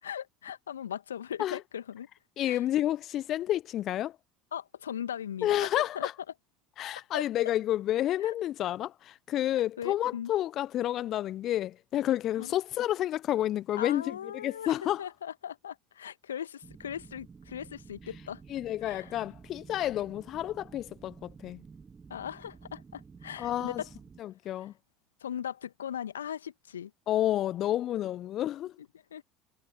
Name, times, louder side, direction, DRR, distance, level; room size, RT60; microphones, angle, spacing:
voice 1, 0.0-2.1 2.4-2.6 4.5-6.1 7.1-7.3 8.2-8.4 9.8-10.3 12.4-12.5 13.8-18.4 18.8-19.2 22.1-23.9 25.2-26.9 29.1-29.2, left 9 dB, 75° left, 1.9 m, -39 dB
voice 2, 2.4-4.2 5.4-6.1 6.8-15.1 18.5-21.6 23.4-23.8 24.2-24.7 27.1-28.7, left 12 dB, 45° left, 1.2 m, -30 dB
sound 1, 16.6-24.2, right 5 dB, 25° right, 5.0 m, -51 dB
figure-of-eight pair, 65°, 0 cm